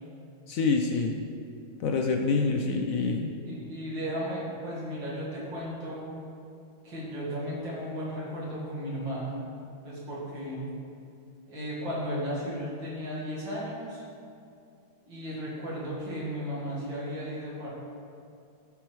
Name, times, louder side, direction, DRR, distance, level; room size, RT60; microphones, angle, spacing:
voice 1, 0.5-1.1 1.8-3.3, left 4 dB, 80° left, 2 dB, 0.7 m, -26 dB
voice 2, 3.4-6.1 6.8-9.4 9.8-10.7 11.5-14.0 15.1-17.7, equal, 70° right, -7 dB, 2.9 m, -35 dB
14.5 x 5.0 x 4.6 m, 2.6 s
omnidirectional pair, 2.1 m